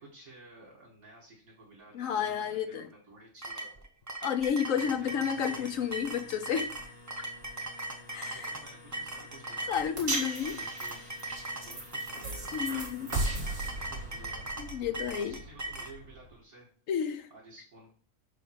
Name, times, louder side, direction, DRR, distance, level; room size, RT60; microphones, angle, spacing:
voice 1, 0.0-3.7 5.0-5.9 8.1-9.7 10.2-11.3 11.6-14.5 15.1-16.7 17.3-17.9, right 2 dB, 70° right, -5 dB, 2.6 m, -53 dB
voice 2, 1.9-2.9 4.2-6.7 8.1-8.5 9.7-10.6 12.5-13.2 14.6-15.4 16.9-17.3, left 8 dB, 65° left, 10 dB, 1.1 m, -31 dB
sound 1, 3.4-15.9, right 2 dB, 20° right, 0.4 m, -39 dB
sound 2, 4.7-14.5, left 2 dB, 80° left, 2.1 m, -53 dB
sound 3, 10.0-16.3, right 2 dB, 45° right, 2.5 m, -37 dB
5.2 x 5.0 x 6.1 m, 0.43 s
omnidirectional pair, 1.5 m